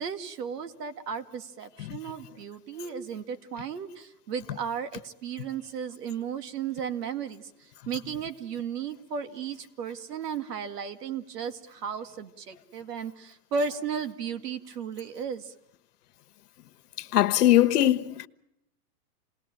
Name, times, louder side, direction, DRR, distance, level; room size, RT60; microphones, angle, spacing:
voice 1, 0.0-15.5, right 6 dB, 90° right, 2.2 m, -35 dB
voice 2, 17.1-18.3, left 13 dB, 80° left, 1.3 m, -20 dB
28.0 x 19.5 x 9.1 m
supercardioid pair, 160°, 46 cm